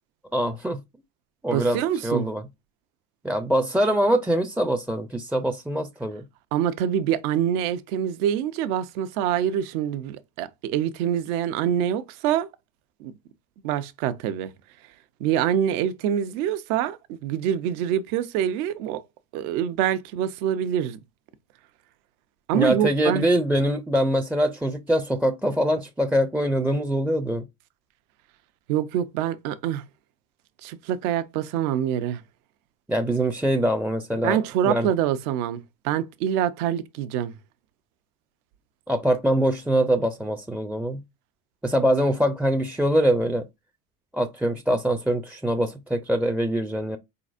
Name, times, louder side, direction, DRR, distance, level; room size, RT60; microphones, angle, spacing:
voice 1, 0.3-0.8 1.4-2.4 3.2-6.2 22.5-27.4 32.9-34.9 38.9-41.0 41.6-43.5 44.1-47.0, right 1 dB, 5° right, 0.4 m, -23 dB
voice 2, 1.5-2.3 6.5-12.5 13.0-13.1 13.6-14.5 15.2-19.0 19.3-21.0 22.5-23.3 28.7-29.8 30.6-32.2 34.2-37.3, right 10 dB, 70° right, 0.7 m, -25 dB
4.2 x 4.0 x 2.5 m
hypercardioid pair, 80°, 45 cm